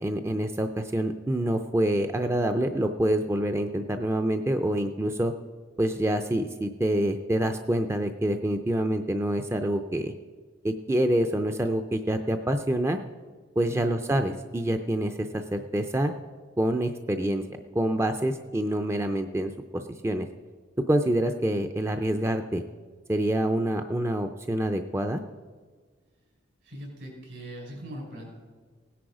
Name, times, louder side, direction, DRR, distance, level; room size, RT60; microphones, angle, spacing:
voice 1, 0.0-5.3 5.8-10.1 10.6-13.0 13.6-16.1 16.6-17.4 17.7-20.3 20.9-22.6 23.1-25.2, right 1 dB, 15° right, 6 dB, 0.5 m, -26 dB
voice 2, 26.6-28.4, equal, 75° right, 0 dB, 5.2 m, -40 dB
17.5 x 10.0 x 4.9 m, 1.5 s
head